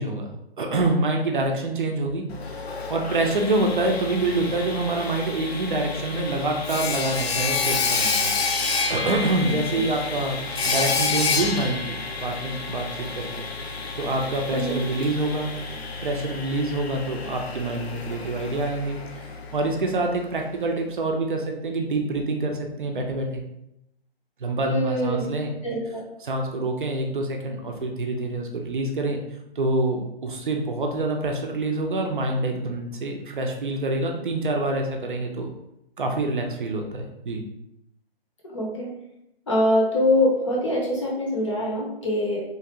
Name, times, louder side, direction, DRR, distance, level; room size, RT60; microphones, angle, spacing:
voice 1, 0.0-2.3 2.9-8.3 8.9-10.4 10.6-13.5 14.0-15.5 16.0-19.0 19.5-23.4 24.4-25.6 26.2-29.2 29.6-35.5 36.0-37.4, right 2 dB, 55° right, 2 dB, 0.5 m, -26 dB
Sawing, 2.3-20.1, left 4 dB, 80° left, 0.6 m, -29 dB
voice 2, 9.4-9.8 14.5-14.8 24.7-25.3 25.6-26.0 38.4-38.9 39.5-42.4, left 1 dB, 30° left, -3 dB, 0.6 m, -24 dB
3.1 x 2.4 x 2.8 m, 0.84 s
figure-of-eight pair, 150°, 31 cm